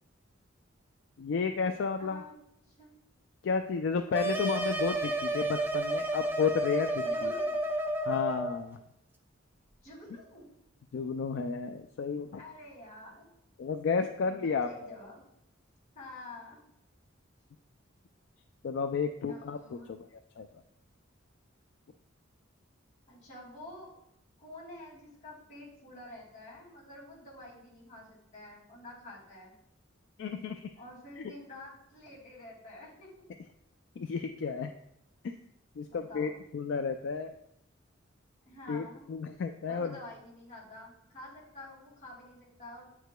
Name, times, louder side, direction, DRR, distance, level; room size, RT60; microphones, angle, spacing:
voice 1, 1.2-2.2 3.4-7.3 8.1-8.8 10.9-12.4 13.6-14.9 18.6-19.8 20.4-20.5 30.2-30.7 31.2-31.3 34.0-34.7 35.2-35.3 35.8-37.3 38.7-39.9, left 5 dB, 65° left, 6 dB, 0.3 m, -32 dB
voice 2, 2.0-2.3 2.7-2.9 7.0-7.6 9.8-10.5 12.3-13.2 14.2-15.2 15.9-16.6 19.2-19.9 23.1-23.9 24.4-29.5 30.8-33.1 35.9-36.3 38.4-39.1 39.6-42.9, left 1 dB, 40° left, -4 dB, 2.3 m, -48 dB
sound 1, 4.1-8.6, right 1 dB, 10° right, 0.4 m, -31 dB
8.9 x 4.7 x 2.2 m, 0.79 s
head